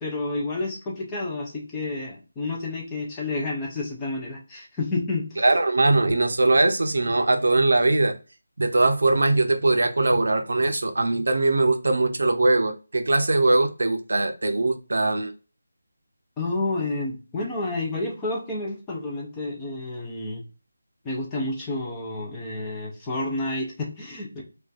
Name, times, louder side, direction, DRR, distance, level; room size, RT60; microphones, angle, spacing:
voice 1, 0.0-5.4 16.4-20.4 21.0-24.4, left 2 dB, 10° left, 0.4 m, -30 dB
voice 2, 5.4-8.1 8.6-15.3, right 2 dB, 65° right, 0.5 m, -21 dB
2.4 x 2.2 x 3.8 m
figure-of-eight pair, 180°, 0 cm